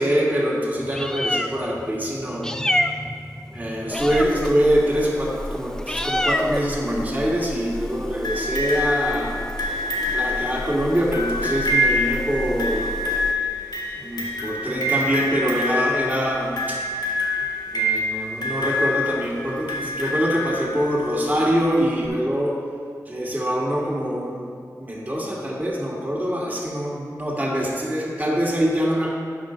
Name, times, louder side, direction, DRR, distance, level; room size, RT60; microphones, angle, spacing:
voice 1, 0.0-2.5 3.5-9.4 10.0-12.9 14.0-16.8 17.7-22.5 23.1-24.5 24.8-29.1, equal, 25° right, -4 dB, 2.1 m, -24 dB
Meow, 0.8-13.3, left 1 dB, 10° left, 0.4 m, -29 dB
sound 1, 8.2-21.1 22.0-22.1, left 1 dB, 85° left, 1.6 m, -26 dB
9.1 x 5.7 x 5.2 m, 2.1 s
wide cardioid pair, 55°, 7 cm